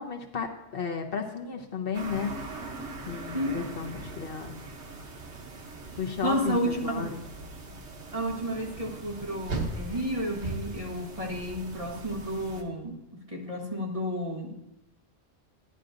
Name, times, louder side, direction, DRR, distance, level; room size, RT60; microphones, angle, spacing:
voice 1, 0.0-2.4 3.0-4.5 6.0-7.2, left 6 dB, 60° left, 2 dB, 1.0 m, -33 dB
sound 1, 1.9-12.6, right 3 dB, 85° right, 1.3 m, -40 dB
voice 2, 3.3-3.7 6.2-7.1 8.1-14.5, equal, 35° right, 0 dB, 1.3 m, -31 dB
12.0 x 10.5 x 2.5 m, 0.92 s
omnidirectional pair, 1.1 m